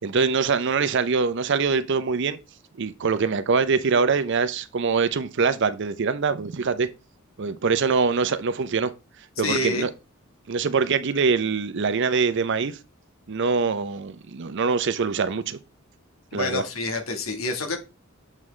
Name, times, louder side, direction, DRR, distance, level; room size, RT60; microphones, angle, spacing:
voice 1, 0.0-2.4 2.8-6.9 7.4-8.9 9.4-9.9 10.5-12.8 13.3-15.6 16.3-16.6, right 5 dB, 60° right, 0.6 m, -23 dB
voice 2, 9.4-9.9 16.3-17.8, left 2 dB, 85° left, 1.5 m, -27 dB
7.4 x 5.5 x 3.2 m
head